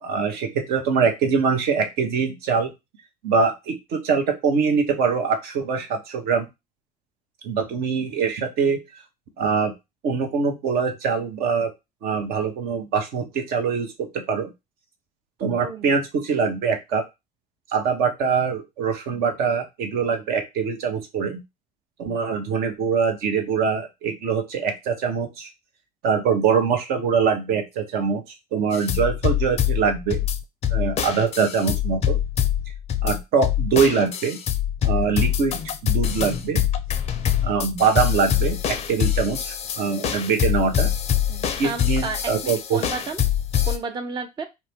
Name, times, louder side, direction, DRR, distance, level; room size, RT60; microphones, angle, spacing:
voice 1, 0.0-2.7 3.2-6.5 7.4-8.8 9.4-9.7 10.0-11.7 12.0-14.5 15.4-17.0 17.7-21.4 22.0-25.5 26.0-28.2 28.5-30.2 30.7-32.2 33.0-34.4 34.8-35.6 35.8-36.6 37.4-40.9 41.6-42.8, right 5 dB, 55° right, 5 dB, 0.8 m, -23 dB
voice 2, 15.6-16.0 41.3-43.2 43.7-44.4, right 4 dB, 25° right, 6 dB, 0.5 m, -32 dB
sound 1, 28.7-43.8, left 10 dB, 35° left, 0.5 m, -24 dB
2.6 x 2.1 x 3.3 m, 0.22 s
hypercardioid pair, 65°, 19 cm